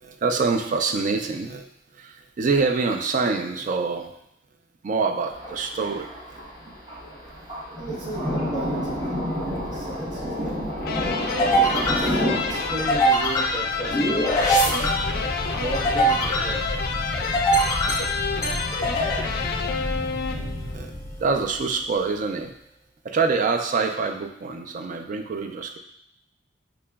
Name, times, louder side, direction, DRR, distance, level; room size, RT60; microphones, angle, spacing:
voice 1, 0.0-1.6 2.0-4.1 4.8-6.1 10.4-10.5 14.8-14.9 17.7-17.8 19.5-19.6 20.7-20.9 21.2-22.5 23.0-25.8, right 4 dB, 45° right, 5 dB, 0.3 m, -25 dB
Thunder, 5.3-16.6, equal, 30° right, 0.8 m, -31 dB
voice 2, 7.7-9.2 9.6-10.7 11.3-12.2 12.5-14.2 14.7-16.6, right 1 dB, 70° right, -4 dB, 1.0 m, -35 dB
sound 1, 9.1-21.7, right 1 dB, 20° left, 0.7 m, -25 dB
sound 2, 10.8-20.8, left 5 dB, 55° left, 0.4 m, -29 dB
4.9 x 2.9 x 2.3 m, 0.75 s
head